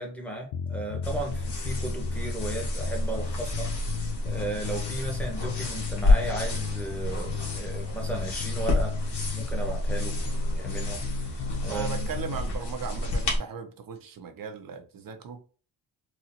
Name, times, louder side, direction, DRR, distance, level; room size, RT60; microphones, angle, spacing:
voice 1, 0.0-10.2 10.5-12.1, right 2 dB, 5° left, 1.2 m, -36 dB
sound 1, 0.5-12.5, left 7 dB, 90° left, 0.6 m, -35 dB
sound 2, 1.0-13.4, left 1 dB, 60° left, 1.5 m, -29 dB
voice 2, 11.7-15.4, right 6 dB, 45° right, 0.7 m, -38 dB
4.1 x 2.4 x 2.8 m
cardioid pair, 110°, 46 cm